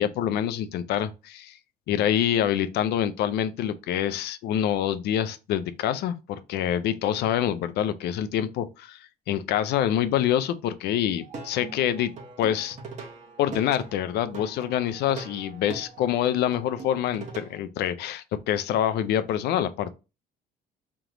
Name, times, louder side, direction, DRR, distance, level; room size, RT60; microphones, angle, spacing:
voice 1, 0.0-1.6 1.9-12.1 12.4-12.8 13.4-19.9, left 10 dB, 75° left, 0.5 m, -26 dB
Plucked string instrument, 11.2-17.6, right 3 dB, 45° right, 1.2 m, -42 dB
3.5 x 2.9 x 3.8 m
cardioid pair, 110°, 17 cm